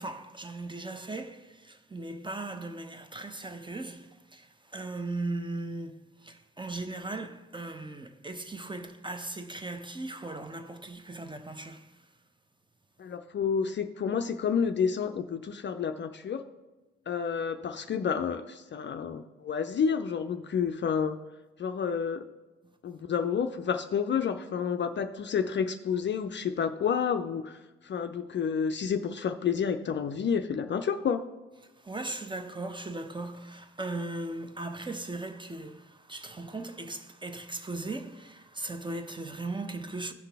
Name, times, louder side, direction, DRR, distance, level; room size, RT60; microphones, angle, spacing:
voice 1, 0.0-12.1 22.6-22.7 31.6-40.1, right 2 dB, 15° right, 0.7 m, -38 dB
voice 2, 13.0-16.4 17.1-21.2 21.6-22.2 22.8-27.6 27.8-31.2, left 7 dB, 35° left, 0.5 m, -30 dB
15.0 x 5.7 x 3.4 m
figure-of-eight pair, 40°, 35 cm